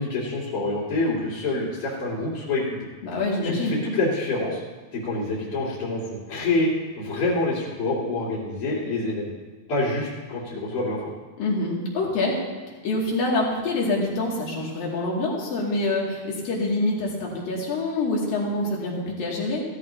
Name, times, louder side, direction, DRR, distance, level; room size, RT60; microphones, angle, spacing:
voice 1, 0.0-2.6 3.4-4.6 4.9-6.7 7.0-9.3 9.7-11.0, left 2 dB, 40° left, -9 dB, 3.1 m, -26 dB
voice 2, 3.0-3.8 11.4-12.4 12.8-19.6, left 2 dB, 65° left, -3 dB, 4.2 m, -26 dB
16.0 x 14.0 x 2.9 m, 1.4 s
omnidirectional pair, 4.4 m